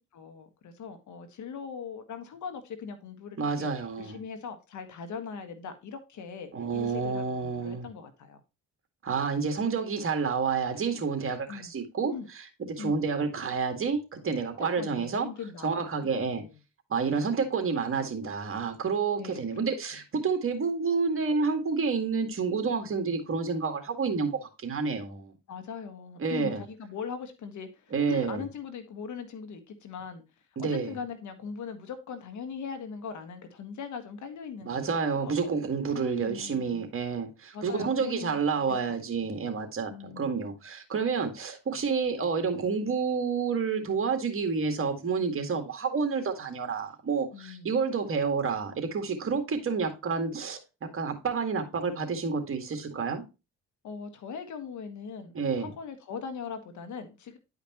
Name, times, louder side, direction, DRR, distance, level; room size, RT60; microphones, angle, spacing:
voice 1, 0.1-3.7 4.0-8.4 11.5-11.7 12.1-12.3 12.8-13.1 14.6-16.6 17.1-17.4 19.2-19.7 25.5-30.2 30.6-35.3 35.9-36.8 37.5-38.4 38.7-38.9 39.2-39.6 39.9-40.4 47.3-47.7 53.8-57.4, left 6 dB, 70° left, 1.6 m, -40 dB
voice 2, 3.4-4.2 6.5-7.9 9.0-15.3 15.6-16.4 16.9-25.3 26.2-26.6 27.9-28.4 30.6-31.0 34.6-50.6 50.9-53.2 55.3-55.7, right 5 dB, 45° right, 2.0 m, -29 dB
10.5 x 5.1 x 3.0 m
cardioid pair, 90°, 30 cm